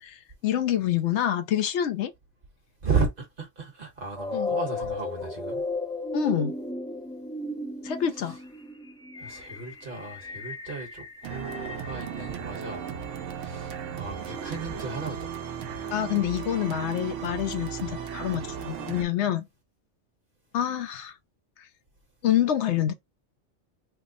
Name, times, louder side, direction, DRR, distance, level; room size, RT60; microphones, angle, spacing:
voice 1, 0.0-2.1 4.3-4.6 6.1-6.5 7.8-8.4 15.9-19.4 20.5-21.1 22.2-22.9, left 10 dB, 70° left, 0.8 m, -27 dB
voice 2, 2.8-5.6 8.2-8.3 9.2-12.9 13.4-15.3, right 4 dB, 50° right, 1.3 m, -34 dB
sound 1, 4.1-13.1, left 2 dB, 10° left, 0.3 m, -35 dB
sound 2, 11.2-19.0, right 7 dB, 80° right, 1.0 m, -36 dB
3.4 x 2.0 x 3.7 m
omnidirectional pair, 1.3 m